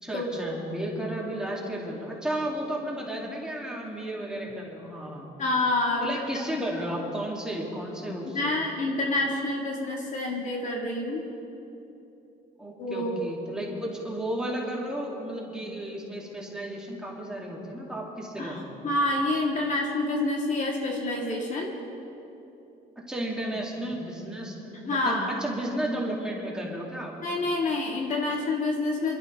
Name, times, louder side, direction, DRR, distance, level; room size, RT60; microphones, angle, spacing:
voice 1, 0.0-5.3 6.0-8.5 12.6-18.7 23.1-27.1, right 1 dB, 5° right, -4 dB, 3.0 m, -33 dB
voice 2, 5.4-6.1 6.5-6.6 8.3-11.2 12.8-13.1 18.4-21.7 24.9-25.3 27.2-29.2, left 2 dB, 45° left, -1 dB, 2.1 m, -27 dB
24.0 x 12.5 x 3.6 m, 2.9 s
cardioid pair, 110°, 17 cm